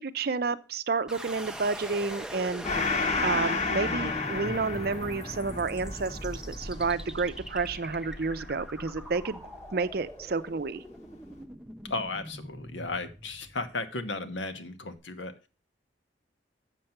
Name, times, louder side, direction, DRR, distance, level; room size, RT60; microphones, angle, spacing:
voice 1, 0.0-2.6 3.2-9.4 9.7-10.8, right 4 dB, 50° right, 14 dB, 0.5 m, -30 dB
sound 1, 1.1-14.0, equal, 5° right, 0.5 m, -41 dB
Gong, 2.6-9.6, left 4 dB, 35° left, 0.9 m, -33 dB
voice 2, 11.9-15.3, left 3 dB, 75° left, 8 dB, 1.0 m, -35 dB
7.4 x 6.6 x 5.7 m, 0.33 s
head